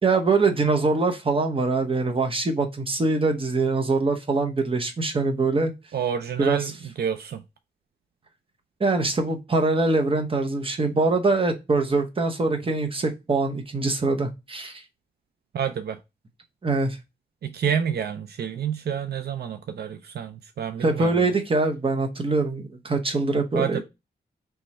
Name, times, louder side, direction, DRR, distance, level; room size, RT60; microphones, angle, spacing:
voice 1, 0.0-5.7 6.4-6.6 8.8-14.8 16.6-17.0 20.8-23.8, right 3 dB, 30° right, 0.8 m, -23 dB
voice 2, 5.9-7.4 15.5-16.0 17.4-21.3 23.5-23.8, right 8 dB, 70° right, 0.4 m, -29 dB
3.5 x 3.1 x 4.1 m
wide cardioid pair, 95°, 17 cm